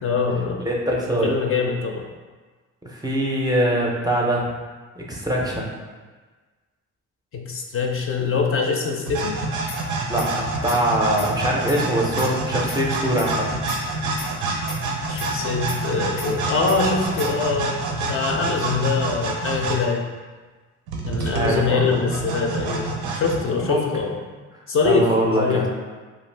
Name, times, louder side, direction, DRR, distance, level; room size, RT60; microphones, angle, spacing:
voice 1, 0.0-0.6 1.0-2.1 7.3-9.4 15.1-20.1 21.1-24.1 24.7-25.7, left 4 dB, 45° left, 1 dB, 0.4 m, -24 dB
voice 2, 0.7-1.3 2.8-4.5 5.0-5.7 10.1-13.5 21.0-22.0 23.6-23.8 24.9-25.7, right 1 dB, 15° right, -3 dB, 0.4 m, -23 dB
sound 1, 9.1-19.9 20.9-23.4, right 3 dB, 85° right, 0.5 m, -27 dB
sound 2, 9.7-10.3 10.5-10.8 11.0-12.3 12.5-12.8 13.0-14.3 14.5-14.8 15.0-16.3 16.5-16.8 17.0-17.4, left 3 dB, 90° left, 0.7 m, -35 dB
2.5 x 2.4 x 3.2 m, 1.4 s
cardioid pair, 90°, 30 cm